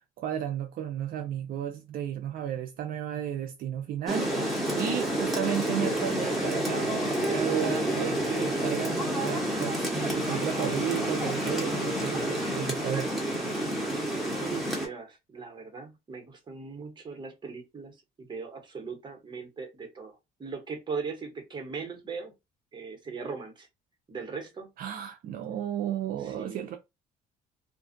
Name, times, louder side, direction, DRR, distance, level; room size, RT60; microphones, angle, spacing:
voice 1, 0.2-4.3 4.8-13.1 24.8-26.8, right 10 dB, 60° right, 0.4 m, -33 dB
Rain, 4.1-14.9, right 1 dB, ahead, 1.1 m, -29 dB
voice 2, 14.4-22.3 22.7-23.7 24.1-24.7 26.2-26.7, right 5 dB, 25° right, 1.0 m, -39 dB
2.5 x 2.3 x 2.6 m
cardioid pair, 110°, 17 cm